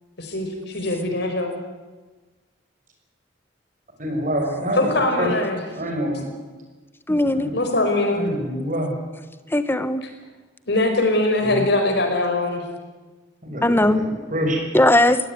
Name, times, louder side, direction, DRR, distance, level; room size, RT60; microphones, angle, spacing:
voice 1, 0.2-1.5 4.7-5.6 7.5-8.2 10.7-12.6, left 2 dB, 60° left, 4 dB, 5.2 m, -22 dB
voice 2, 4.0-5.3 5.8-6.3 7.3-7.6 8.1-8.9 11.4-11.6 13.4-14.6, equal, 45° right, 3 dB, 6.4 m, -26 dB
voice 3, 7.1-7.5 9.5-10.0 13.6-14.0 14.7-15.3, left 1 dB, 10° left, 12 dB, 1.1 m, -18 dB
21.5 x 17.5 x 9.7 m, 1.3 s
head